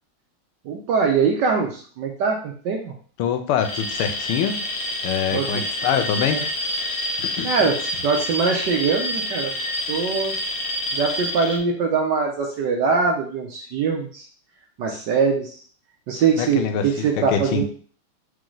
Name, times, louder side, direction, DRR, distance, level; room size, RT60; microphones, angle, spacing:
voice 1, 0.6-2.9 5.3-5.6 6.3-6.4 7.4-7.8 8.0-9.5 9.9-10.3 10.9-14.2 14.8-15.6 16.1-17.7, right 5 dB, 70° right, 1 dB, 1.1 m, -22 dB
voice 2, 3.2-4.6 5.0-6.4 6.7-6.9 7.2-7.7 16.4-16.9 17.3-17.7, left 8 dB, 85° left, 6 dB, 1.5 m, -24 dB
Alarm, 3.6-11.6, left 1 dB, 70° left, 1.8 m, -28 dB
4.0 x 3.2 x 3.8 m, 0.43 s
omnidirectional pair, 2.4 m